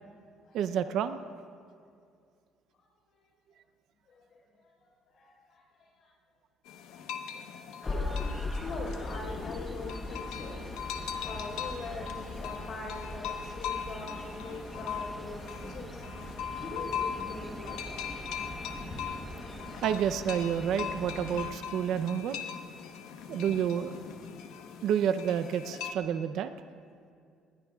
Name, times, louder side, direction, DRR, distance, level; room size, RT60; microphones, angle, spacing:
voice 1, 0.5-1.2 19.8-22.4 23.3-24.0 24.8-26.5, right 8 dB, 60° right, 10 dB, 0.6 m, -29 dB
voice 2, 2.8-3.2 4.1-4.7 5.1-6.1 6.9-11.0 11.2-18.0 18.5-19.0 22.8-23.2 24.6-24.8, left 3 dB, 45° left, 1 dB, 4.4 m, -44 dB
sound 1, 6.7-25.9, left 8 dB, 85° left, 1.1 m, -40 dB
sound 2, 7.8-21.5, right 1 dB, ahead, 1.1 m, -44 dB
sound 3, 7.9-13.8 14.2-14.3, left 3 dB, 20° left, 0.4 m, -39 dB
28.0 x 20.0 x 2.4 m, 2.3 s
cardioid pair, 165°, 0 cm